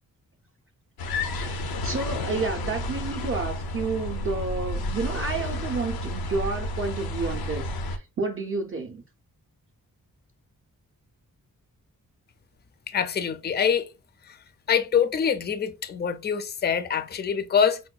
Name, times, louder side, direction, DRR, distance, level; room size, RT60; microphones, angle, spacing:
sound 1, 1.0-8.0, left 1 dB, 85° left, 0.6 m, -31 dB
voice 1, 1.4-9.0, right 4 dB, 40° right, 0.5 m, -30 dB
voice 2, 12.9-13.9 14.2-14.4 14.7-17.8, left 7 dB, 30° left, 0.4 m, -25 dB
4.8 x 2.2 x 2.3 m
wide cardioid pair, 135°, 35 cm